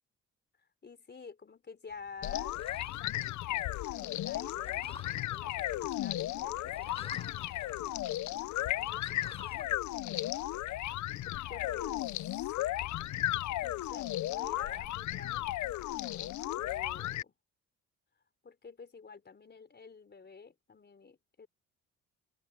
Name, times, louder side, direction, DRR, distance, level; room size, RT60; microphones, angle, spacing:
voice 1, 0.8-7.6 8.8-9.7 11.3-12.1 13.6-17.3 18.4-21.5, left 5 dB, 35° left, 4.3 m, -50 dB
sound 1, 1.9-9.8, left 3 dB, 20° left, 7.4 m, -54 dB
sound 2, 2.2-17.2, left 15 dB, 70° left, 0.6 m, -35 dB
open air
cardioid pair, 90°, 30 cm